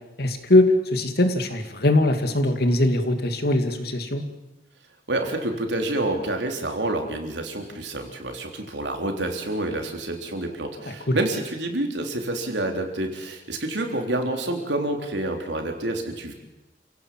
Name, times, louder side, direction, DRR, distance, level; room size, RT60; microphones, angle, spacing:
voice 1, 0.2-4.2 11.1-11.2, left 1 dB, 60° left, 7 dB, 2.6 m, -21 dB
voice 2, 5.1-16.3, right 1 dB, 80° right, 3 dB, 3.8 m, -28 dB
29.0 x 17.0 x 7.7 m, 1.0 s
head